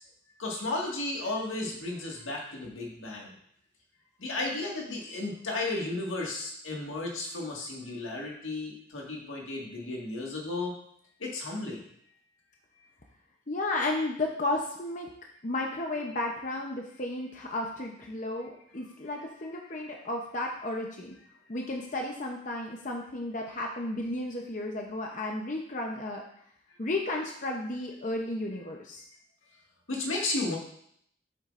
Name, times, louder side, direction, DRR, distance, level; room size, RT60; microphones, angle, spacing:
voice 1, 0.4-3.3 4.2-10.7 11.2-11.8 29.9-30.6, left 2 dB, 85° left, -2 dB, 1.8 m, -34 dB
voice 2, 13.5-15.1 15.4-21.1 21.5-26.2 26.8-29.0, left 2 dB, 40° left, 1 dB, 0.7 m, -33 dB
8.1 x 7.1 x 2.5 m, 0.69 s
head